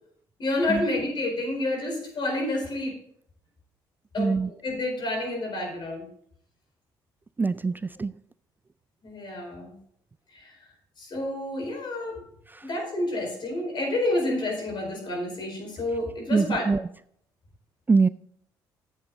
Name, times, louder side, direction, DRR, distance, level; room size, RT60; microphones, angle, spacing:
voice 1, 0.4-2.9 4.1-6.1 9.0-9.7 10.3-10.5 11.0-12.2 12.6-16.7, left 2 dB, 50° left, 1 dB, 4.6 m, -29 dB
voice 2, 4.2-4.5 7.4-8.1 12.5-12.7 16.3-16.8 17.9-18.1, right 4 dB, 20° right, 16 dB, 0.3 m, -23 dB
10.5 x 8.0 x 3.7 m, 0.66 s
hypercardioid pair, 55°, 10 cm